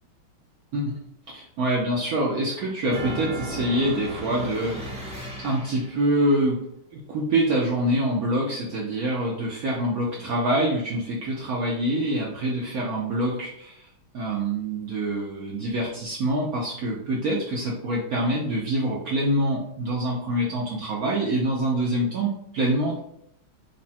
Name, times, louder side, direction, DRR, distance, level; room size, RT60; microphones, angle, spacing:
voice 1, 1.3-6.6 6.9-13.9 14.1-23.0, right 1 dB, 75° right, -3 dB, 0.8 m, -25 dB
sound 1, 2.9-6.1, right 1 dB, 10° right, 0.4 m, -35 dB
4.8 x 2.1 x 4.2 m, 0.74 s
omnidirectional pair, 2.4 m